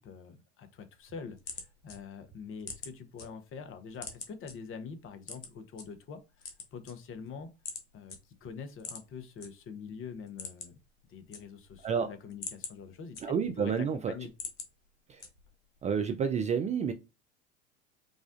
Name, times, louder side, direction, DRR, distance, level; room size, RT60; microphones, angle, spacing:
voice 1, 0.0-7.5 7.9-10.8 11.1-13.2 13.6-14.3, left 6 dB, 35° left, 0.9 m, -45 dB
sound 1, 1.0-3.3 3.6-4.5 5.2-5.8 6.3-7.3 7.6-7.8 8.1-8.2 8.8-9.5 9.8-9.9 10.2-10.8 11.1-11.8 12.2-13.7 14.1-14.7 15.2-15.6, left 4 dB, 90° left, 1.0 m, -43 dB
voice 2, 13.2-14.1 15.1-15.3 15.8-16.9, right 7 dB, 20° right, 0.3 m, -30 dB
5.0 x 2.3 x 2.5 m
hypercardioid pair, 80°, 35 cm